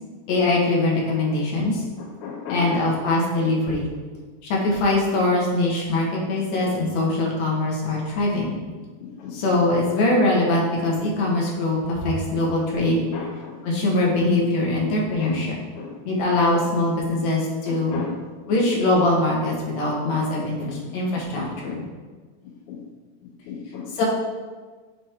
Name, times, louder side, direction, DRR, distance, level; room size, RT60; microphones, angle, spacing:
voice 1, 0.3-1.8 2.5-3.9 4.4-8.5 9.3-13.1 13.6-15.6 16.1-18.0 18.5-21.8 23.9-24.0, left 2 dB, 65° left, -3 dB, 2.5 m, -22 dB
voice 2, 2.2-2.8 9.0-9.4 13.1-13.6 15.2-15.4 15.8-15.9 17.7-18.1 20.1-20.8 21.4-21.8 22.7-22.8 23.5-23.9, left 6 dB, 80° left, 0 dB, 1.9 m, -34 dB
7.6 x 4.4 x 3.6 m, 1.4 s
omnidirectional pair, 3.4 m